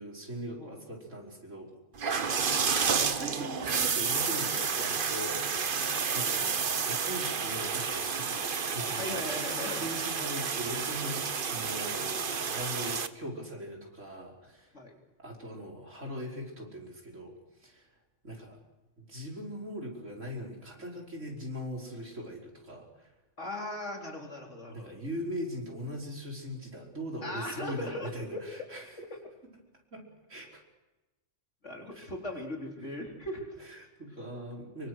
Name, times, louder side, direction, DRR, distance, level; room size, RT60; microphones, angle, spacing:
voice 1, 0.0-1.7 2.6-5.7 6.1-14.7 15.2-17.4 17.6-17.9 18.2-18.6 19.0-23.1 24.7-28.9 29.9-30.0 30.3-30.6 31.9-32.1 33.6-34.9, equal, 80° right, -1 dB, 5.7 m, -40 dB
sound 1, 2.0-13.1, right 6 dB, 45° right, 1.2 m, -30 dB
voice 2, 5.8-6.1 8.9-9.9 14.7-15.0 23.4-24.9 27.2-28.7 29.0-29.1 31.6-33.5, left 1 dB, 70° left, 1 dB, 4.2 m, -39 dB
25.5 x 23.5 x 6.4 m, 1.1 s
omnidirectional pair, 1.3 m